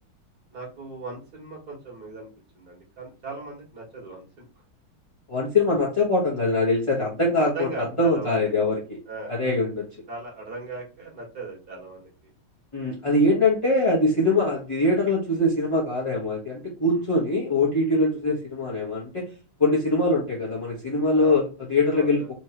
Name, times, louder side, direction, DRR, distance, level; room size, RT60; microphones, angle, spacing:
voice 1, 0.5-2.3 2.5-4.4 7.4-8.5 9.1-9.3 10.1-12.3 16.9-17.0 21.2-21.4 21.9-22.3, right 3 dB, 50° right, -2 dB, 2.3 m, -38 dB
voice 2, 5.3-7.7 8.0-9.0 9.3-9.9 12.7-19.3 19.6-22.3, left 2 dB, 20° left, -6 dB, 1.0 m, -23 dB
4.5 x 3.1 x 2.9 m, 0.34 s
omnidirectional pair, 2.3 m